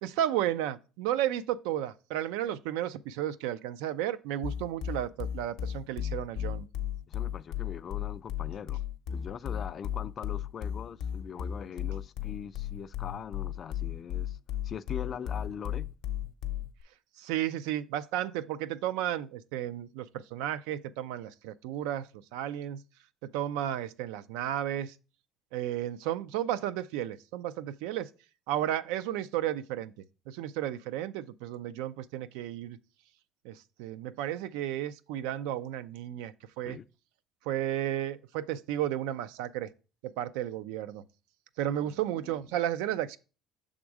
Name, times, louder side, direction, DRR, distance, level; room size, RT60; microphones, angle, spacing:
voice 1, 0.0-6.7 17.2-22.8 23.3-24.9 25.5-28.1 28.5-29.9 30.3-32.8 33.4-36.8 37.5-39.7 40.0-41.0 41.6-43.2, right 12 dB, 90° right, 0.3 m, -33 dB
sound 1, 4.4-16.8, left 10 dB, 80° left, 0.7 m, -35 dB
voice 2, 7.1-8.8 9.1-14.4 14.6-15.9 36.6-36.9 41.8-42.4, left 7 dB, 45° left, 0.3 m, -41 dB
6.1 x 3.6 x 4.7 m
supercardioid pair, 100°, 0 cm